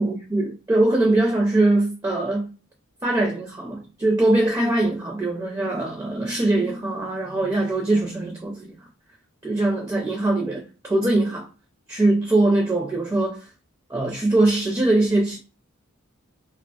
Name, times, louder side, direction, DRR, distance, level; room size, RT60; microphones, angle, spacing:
voice 1, 0.0-2.5 3.0-8.7 9.4-11.5 11.9-13.5 13.9-15.4, right 2 dB, 15° right, 0.4 m, -22 dB
2.5 x 2.0 x 2.7 m
head